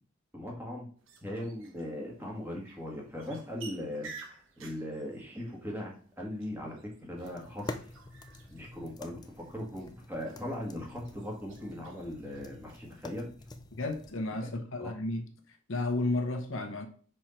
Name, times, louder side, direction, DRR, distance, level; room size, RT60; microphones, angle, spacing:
voice 1, 0.3-0.9 1.2-7.8 8.5-13.3 14.4-14.5 14.8-14.9, left 1 dB, 10° right, 1.7 m, -39 dB
sound 1, 1.0-13.3, right 5 dB, 60° right, 1.2 m, -54 dB
sound 2, 7.2-14.1, left 2 dB, 20° left, 0.4 m, -47 dB
voice 2, 13.8-15.3 15.7-16.9, left 2 dB, 60° left, 0.9 m, -32 dB
5.5 x 4.8 x 4.4 m
head